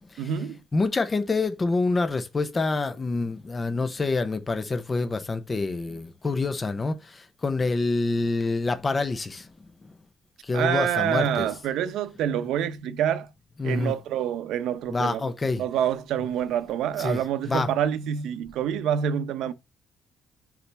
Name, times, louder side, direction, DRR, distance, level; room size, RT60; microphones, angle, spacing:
voice 1, 0.2-0.6 10.5-13.3 13.6-15.2 15.5-19.5, right 9 dB, 80° right, 0.8 m, -27 dB
voice 2, 0.7-9.5 9.8-9.9 10.4-11.5 13.6-13.9 14.9-15.6 17.0-17.2 17.5-17.7, left 3 dB, 20° left, 0.8 m, -27 dB
7.1 x 5.6 x 3.4 m
cardioid pair, 180°, 0 cm